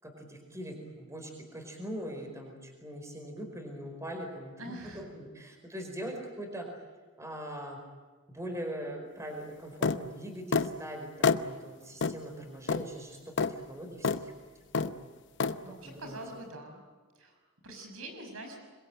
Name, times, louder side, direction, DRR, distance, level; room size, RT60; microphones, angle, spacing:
voice 1, 0.0-6.7 7.2-7.8 8.3-14.3 14.7-15.0 15.6-16.2, equal, 15° right, 3 dB, 4.9 m, -42 dB
voice 2, 4.6-5.0 6.0-6.1 15.6-16.8 17.1-18.6, right 1 dB, 90° right, 4 dB, 6.1 m, -45 dB
sound 1, 9.8-10.0 10.5-10.7 11.2-11.4 12.0-12.2 12.7-12.9 13.4-13.5 14.0-14.2 14.7-14.9 15.4-15.6, left 5 dB, 55° left, 0.8 m, -27 dB
26.5 x 22.5 x 9.1 m, 1.4 s
head